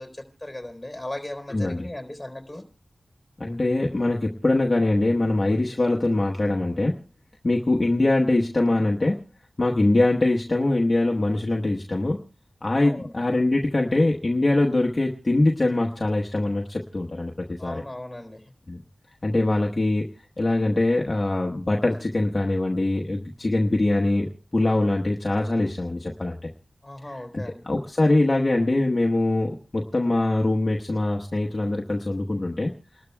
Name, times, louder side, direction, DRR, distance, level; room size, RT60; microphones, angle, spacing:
voice 1, 0.0-2.6 12.8-13.2 17.6-18.5 26.8-27.7, left 1 dB, 15° left, 4 dB, 3.7 m, -37 dB
voice 2, 1.5-1.9 3.4-7.0 7.4-9.2 9.6-12.2 12.6-17.8 18.7-18.8 19.2-20.1 20.4-26.5 27.3-32.7, left 2 dB, 40° left, -2 dB, 1.2 m, -23 dB
29.5 x 12.5 x 2.3 m, 0.35 s
wide cardioid pair, 60°, 0 cm